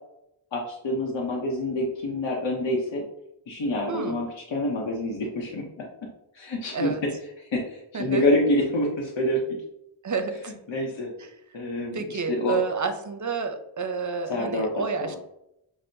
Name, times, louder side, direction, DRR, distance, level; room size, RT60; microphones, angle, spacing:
voice 1, 0.5-3.0 3.5-5.8 6.4-6.9 7.5-9.4 10.7-11.1 11.5-12.6 14.3-15.2, left 1 dB, 65° left, -2 dB, 0.8 m, -27 dB
voice 2, 10.0-10.5 11.2-11.4 11.9-15.2, right 5 dB, 40° right, 7 dB, 0.5 m, -30 dB
6.0 x 2.1 x 2.6 m, 0.81 s
wide cardioid pair, 70°, 48 cm